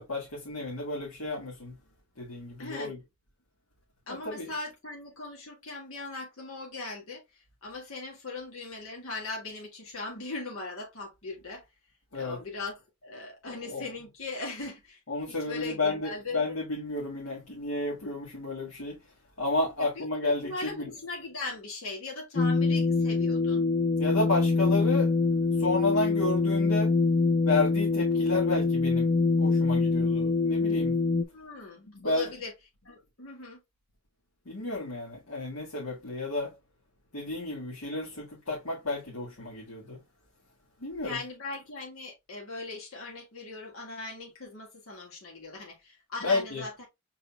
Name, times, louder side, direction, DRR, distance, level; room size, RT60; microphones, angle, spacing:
voice 1, 0.0-1.7 2.2-3.0 4.1-4.5 12.1-12.4 13.4-13.9 15.1-19.0 19.4-20.9 24.0-25.1 25.6-26.9 27.5-29.1 29.4-30.9 31.9-32.3 34.5-36.5 37.1-40.0 40.8-41.2 46.2-46.6, left 2 dB, 90° left, 1.8 m, -31 dB
voice 2, 2.6-2.9 4.1-11.6 12.1-12.7 13.0-15.0 15.3-16.5 19.8-23.7 31.3-32.5 32.9-33.6 41.0-46.9, left 3 dB, 75° left, 1.7 m, -39 dB
sound 1, 22.3-31.2, left 3 dB, 30° left, 0.4 m, -25 dB
5.5 x 4.0 x 2.3 m
head